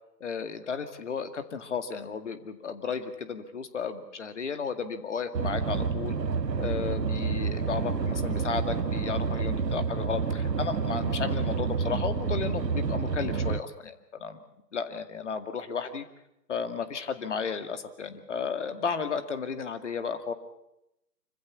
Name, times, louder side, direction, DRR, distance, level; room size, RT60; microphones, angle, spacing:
voice 1, 0.2-6.2 6.6-14.4 14.7-16.0 16.5-20.3, left 6 dB, 45° left, 9 dB, 2.3 m, -33 dB
sound 1, 5.3-13.6, right 5 dB, 80° right, 1.3 m, -29 dB
25.5 x 15.5 x 8.3 m, 0.85 s
figure-of-eight pair, 150°, 49 cm